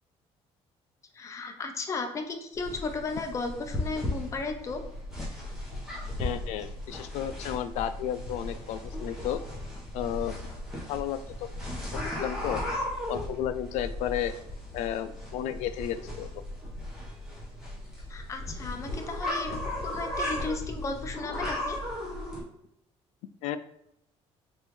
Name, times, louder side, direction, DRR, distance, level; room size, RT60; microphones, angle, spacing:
voice 1, 1.1-4.8 18.1-21.8, left 3 dB, 25° left, 5 dB, 0.5 m, -35 dB
sound 1, 2.5-22.4, left 1 dB, 5° right, 1.0 m, -36 dB
voice 2, 6.2-9.4 9.9-10.4 10.9-11.5 12.2-12.6 13.1-14.3 14.7-16.3 23.4-23.6, left 10 dB, 85° left, 12 dB, 0.4 m, -32 dB
5.3 x 2.6 x 3.1 m, 0.79 s
cardioid pair, 170°, 12 cm